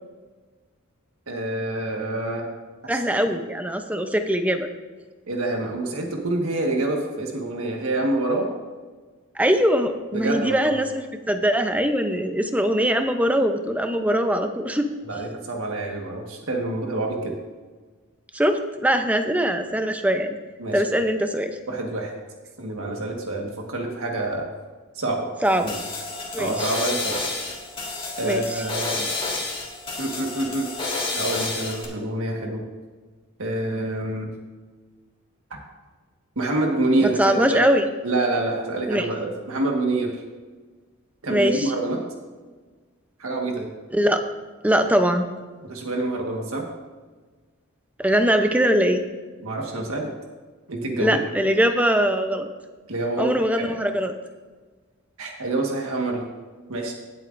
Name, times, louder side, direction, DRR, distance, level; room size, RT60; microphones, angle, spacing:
voice 1, 1.3-2.5 2.8-2.9 3.3-3.4 5.3-8.5 10.1-10.7 15.1-17.3 20.6-20.8 21.7-22.1 22.6-24.5 24.9-25.3 25.6-25.8 26.4-27.2 28.2-29.2 30.0-30.7 31.1-32.6 33.4-34.3 36.3-37.6 38.0-40.1 41.2-42.0 43.2-43.7 45.6-46.6 49.4-50.1 50.7-51.2 52.9-53.7 55.2-56.2 56.7-56.9, right 2 dB, 75° right, 1 dB, 1.5 m, -26 dB
voice 2, 2.9-4.7 9.4-14.9 18.3-20.4 20.7-21.6 25.4-25.7 26.3-26.7 28.2-28.4 37.0-37.8 38.9-39.1 41.3-41.7 43.9-44.2 44.6-45.2 48.0-49.0 51.0-52.5 53.2-54.1, equal, 5° right, 7 dB, 0.6 m, -22 dB
sound 1, 25.4-31.8, left 3 dB, 25° left, 2.0 m, -30 dB
17.5 x 7.7 x 2.6 m, 1.4 s
head